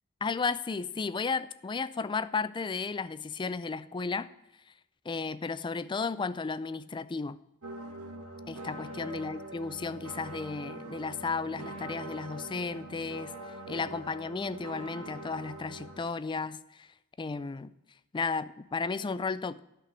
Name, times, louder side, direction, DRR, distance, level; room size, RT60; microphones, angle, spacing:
voice 1, 0.2-4.3 5.1-7.4 8.5-13.3 13.7-16.9 17.2-17.7 18.1-19.6, left 4 dB, 20° left, 15 dB, 0.4 m, -34 dB
sound 1, 7.6-16.0, right 1 dB, 80° right, 1.5 m, -43 dB
11.0 x 5.9 x 6.0 m, 0.90 s
head